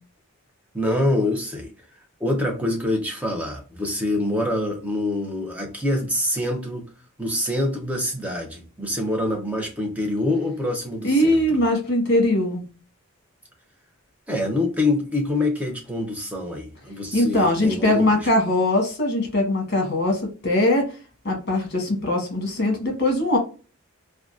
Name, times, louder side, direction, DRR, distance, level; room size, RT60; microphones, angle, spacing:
voice 1, 0.7-1.7 2.2-6.9 7.2-11.4 14.3-18.3, left 1 dB, 5° right, 0.6 m, -25 dB
voice 2, 11.0-12.6 17.1-20.9 21.2-23.4, left 1 dB, 50° left, 1.1 m, -21 dB
3.5 x 2.3 x 2.4 m
head